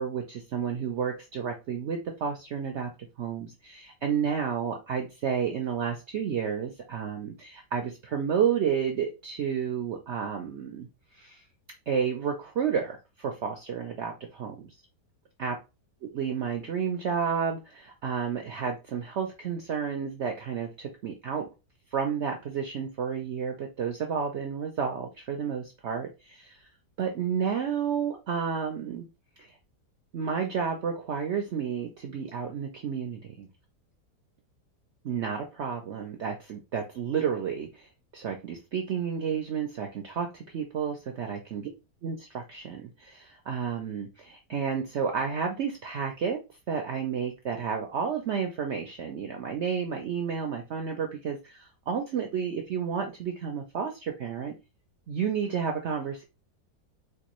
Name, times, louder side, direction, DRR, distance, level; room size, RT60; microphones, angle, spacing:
voice 1, 0.0-2.9 3.2-10.9 11.1-11.4 11.9-14.7 15.4-15.6 16.0-21.5 21.9-26.6 27.0-29.1 29.4-29.5 30.1-33.5 35.0-41.7 42.0-46.4 46.7-54.5 55.1-56.2, right 7 dB, 70° right, 3 dB, 0.6 m, -31 dB
4.5 x 2.4 x 2.9 m, 0.27 s
omnidirectional pair, 1.8 m